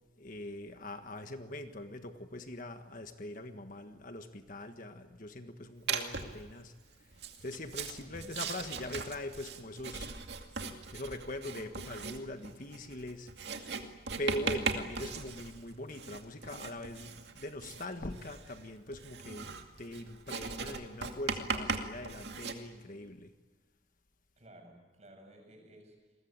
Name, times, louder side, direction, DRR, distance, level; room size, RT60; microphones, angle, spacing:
voice 1, 0.2-6.7 7.4-10.1 10.9-13.3 14.2-19.5 19.8-23.3, left 1 dB, 45° left, 7 dB, 1.5 m, -42 dB
Writing, 5.9-6.4 7.1-22.5, right 5 dB, 65° right, 2.4 m, -39 dB
voice 2, 8.0-8.4 24.4-26.2, right 1 dB, 35° right, 3 dB, 7.6 m, -55 dB
29.0 x 21.5 x 8.9 m, 1.3 s
head